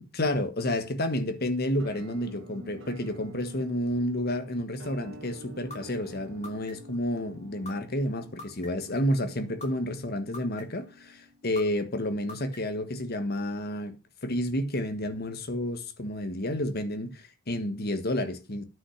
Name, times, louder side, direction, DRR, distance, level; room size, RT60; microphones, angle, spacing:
voice 1, 0.0-14.0 14.2-18.6, left 1 dB, 50° left, 1.4 m, -30 dB
Musical instrument, 1.8-11.6, equal, 75° right, 2.4 m, -48 dB
sound 1, 5.7-5.8 6.4-7.0 7.7-7.8 8.4-8.9 9.6-9.7 10.3-10.9 11.6-11.7 12.3-12.8, left 3 dB, 35° left, 2.7 m, -42 dB
9.7 x 5.6 x 6.4 m
head